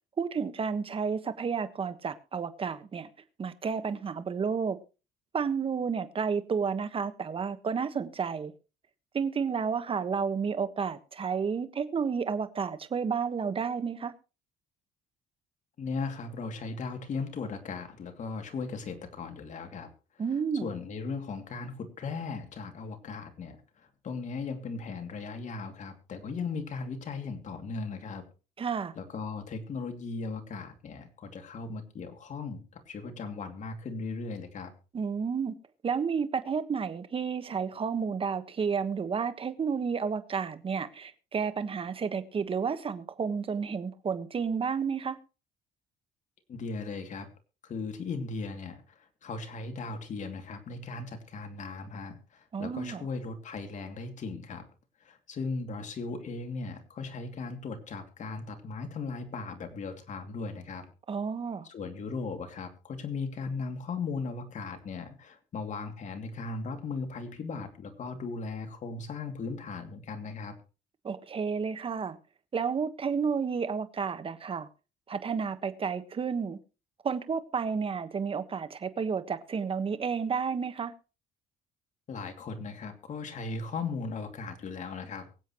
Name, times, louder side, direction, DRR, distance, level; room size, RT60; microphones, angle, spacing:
voice 1, 0.2-3.1 3.4-4.8 5.3-8.5 9.1-14.1 20.2-20.7 28.6-28.9 34.9-35.5 35.8-45.2 52.5-53.1 61.1-61.7 71.0-72.2 72.5-74.7 75.1-76.6 77.0-80.9, right 6 dB, 35° right, 1.3 m, -31 dB
voice 2, 15.8-19.9 20.6-23.6 24.0-28.2 29.0-34.7 46.5-47.3 47.6-48.8 49.2-54.6 55.0-60.9 61.7-70.5 82.1-85.3, left 4 dB, 45° left, 2.7 m, -37 dB
24.0 x 8.0 x 3.1 m
cardioid pair, 110°, 17 cm